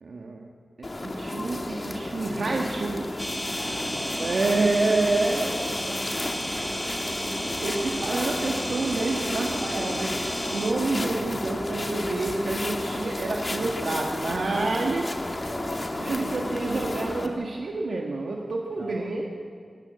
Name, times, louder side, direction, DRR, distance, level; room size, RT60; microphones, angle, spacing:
voice 1, 0.0-0.5 0.8-3.1 4.2-5.5 7.6-10.1 10.5-19.2, right 3 dB, 80° right, -1 dB, 1.8 m, -28 dB
sound 1, 0.8-17.3, left 1 dB, 35° left, 2.1 m, -32 dB
sound 2, 3.2-10.7, equal, ahead, 1.8 m, -33 dB
voice 2, 3.4-4.7 5.1-10.4 11.0-11.1 11.4-12.5 13.5-14.3 15.4-16.0 18.7-19.2, right 1 dB, 45° right, 0 dB, 6.5 m, -45 dB
sound 3, 7.1-14.1, left 2 dB, 85° left, 6.6 m, -51 dB
26.0 x 14.5 x 8.3 m, 2.1 s
wide cardioid pair, 100°, 0 cm